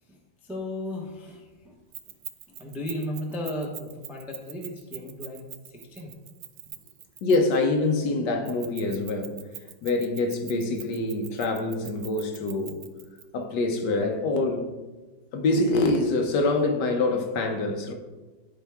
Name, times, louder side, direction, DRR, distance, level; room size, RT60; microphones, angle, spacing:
voice 1, 0.1-1.8 2.5-6.1, left 1 dB, ahead, 0.4 m, -35 dB
Keys jangling, 1.9-7.6 8.5-13.2, right 13 dB, 85° right, 1.4 m, -42 dB
voice 2, 7.2-9.4 9.8-12.8 13.3-14.7 15.3-17.9, left 2 dB, 65° left, 1.4 m, -25 dB
11.0 x 4.6 x 3.5 m
omnidirectional pair, 2.1 m